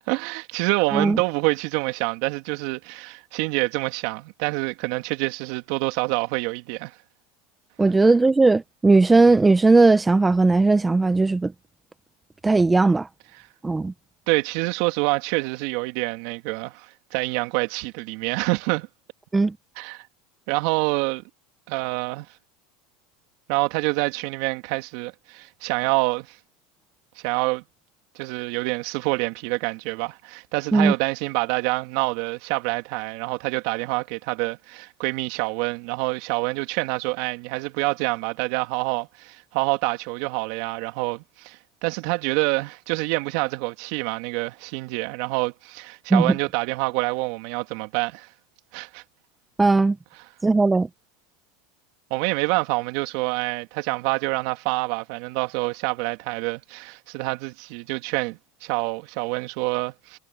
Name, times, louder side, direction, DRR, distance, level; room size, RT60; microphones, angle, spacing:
voice 1, 0.1-6.9 14.3-18.9 19.8-20.1 20.5-21.2 21.7-22.3 23.5-26.4 27.2-27.6 28.1-48.3 48.7-49.0 52.1-60.2, right 25 dB, 65° right, 2.6 m, -26 dB
voice 2, 7.8-11.5 12.4-13.1 13.6-13.9 19.3-19.5 30.7-30.9 46.1-46.3 49.6-50.0 50.4-50.9, right 3 dB, 15° right, 0.9 m, -17 dB
supercardioid pair, 105°, 0 cm